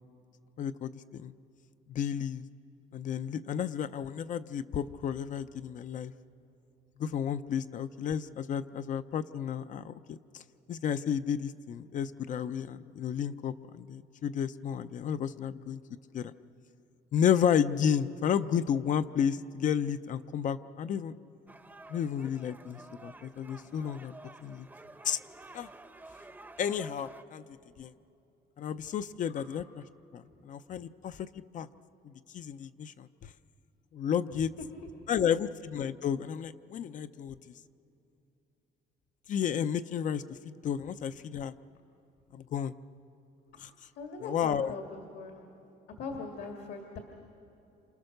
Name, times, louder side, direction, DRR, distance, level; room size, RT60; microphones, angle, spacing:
voice 1, 0.6-1.3 1.9-2.4 2.9-6.1 7.0-10.4 10.7-15.8 16.1-16.3 17.1-21.1 21.9-24.1 24.4-24.7 25.0-25.2 25.5-25.7 26.6-27.4 27.8-27.9 28.6-29.6 30.1-31.2 31.5-31.7 32.3-33.1 33.9-34.5 35.1-37.5 39.3-41.5 42.3-42.7 43.6-43.7 44.2-44.7, left 8 dB, 45° left, 12 dB, 0.6 m, -32 dB
sound 1, 21.5-27.2, right 2 dB, 10° right, 0.8 m, -51 dB
voice 2, 44.0-45.4 46.0-47.0, left 4 dB, 70° left, 2 dB, 2.2 m, -41 dB
28.0 x 27.5 x 6.6 m, 2.9 s
cardioid pair, 155°, 18 cm